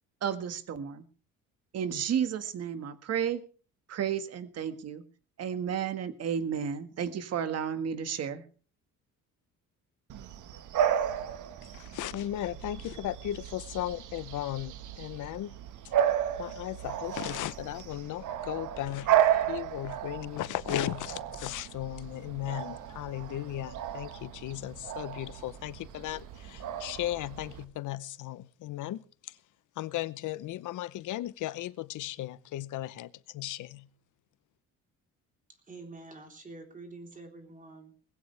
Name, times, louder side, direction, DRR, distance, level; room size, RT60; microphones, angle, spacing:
voice 1, 0.2-1.0 1.7-3.4 3.9-5.0 5.4-8.4, right 8 dB, 50° right, 1.7 m, -32 dB
Bark / Bird vocalization bird call bird song, 10.1-27.6, right 10 dB, 65° right, 1.5 m, -33 dB
voice 2, 11.7-15.5 16.4-29.4 29.8-33.9, left 14 dB, 65° left, 0.8 m, -36 dB
voice 3, 35.6-38.1, right 3 dB, 25° right, 3.7 m, -47 dB
20.5 x 15.5 x 3.3 m
cardioid pair, 150°, 33 cm